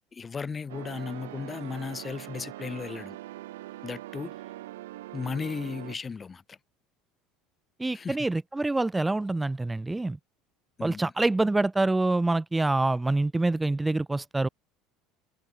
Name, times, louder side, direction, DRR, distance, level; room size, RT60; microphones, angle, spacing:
voice 1, 0.1-3.2 3.8-4.3 5.1-6.6 7.9-8.2 10.8-11.1, left 5 dB, 25° left, 5.2 m, -35 dB
sound 1, 0.7-6.0, right 16 dB, 85° right, 2.0 m, -42 dB
voice 2, 7.8-10.2 10.8-14.5, right 2 dB, 10° right, 0.4 m, -26 dB
supercardioid pair, 90°, 0 cm